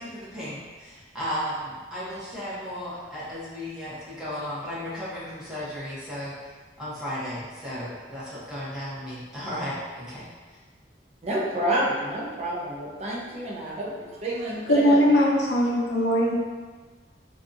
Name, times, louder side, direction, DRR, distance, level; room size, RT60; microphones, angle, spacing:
voice 1, 0.0-6.3 6.8-10.2, equal, 5° right, -10 dB, 0.8 m, -34 dB
voice 2, 11.2-15.0, right 1 dB, 40° right, -4 dB, 0.5 m, -29 dB
voice 3, 14.7-16.3, equal, 75° left, -2 dB, 0.5 m, -20 dB
2.6 x 2.3 x 2.6 m, 1.4 s
head